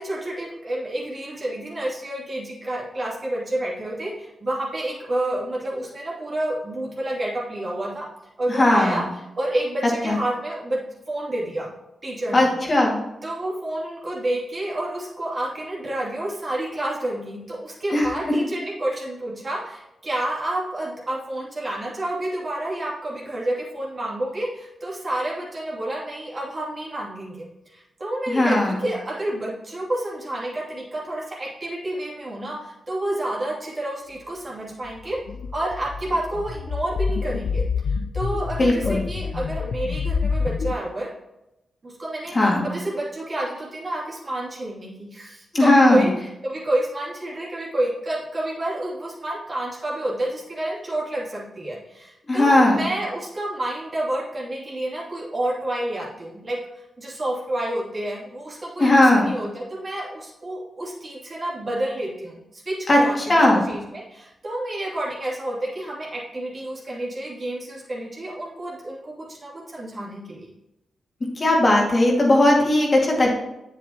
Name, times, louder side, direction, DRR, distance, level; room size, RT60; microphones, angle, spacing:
voice 1, 0.0-8.1 8.4-9.0 9.4-10.8 11.1-11.7 12.0-12.5 13.2-35.2 35.5-41.1 41.8-42.4 42.6-56.6 57.0-70.5, right 1 dB, 45° right, -5 dB, 2.6 m, -29 dB
voice 2, 8.5-9.0 10.0-10.2 12.3-13.0 17.9-18.1 28.3-28.8 38.6-39.0 42.3-42.7 45.5-46.1 52.3-52.8 58.8-59.3 62.9-63.0 63.3-63.6 71.4-73.3, left 1 dB, 40° left, -1 dB, 2.0 m, -17 dB
sound 1, 35.0-40.7, left 5 dB, 75° left, 0.4 m, -27 dB
7.4 x 6.9 x 2.9 m, 0.91 s
supercardioid pair, 40°, 0 cm